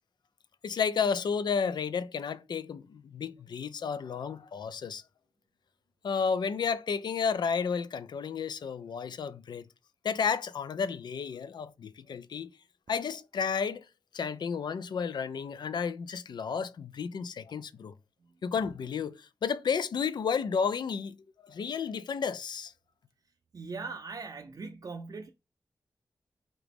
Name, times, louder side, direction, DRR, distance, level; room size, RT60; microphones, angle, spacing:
voice 1, 0.6-5.0 6.0-9.7 10.0-12.5 12.9-13.8 14.1-17.9 18.4-21.2 21.4-22.7, left 6 dB, 80° left, 0.4 m, -32 dB
voice 2, 23.5-25.3, right 4 dB, 55° right, 0.4 m, -40 dB
3.9 x 2.9 x 3.4 m
cardioid pair, 50°, 7 cm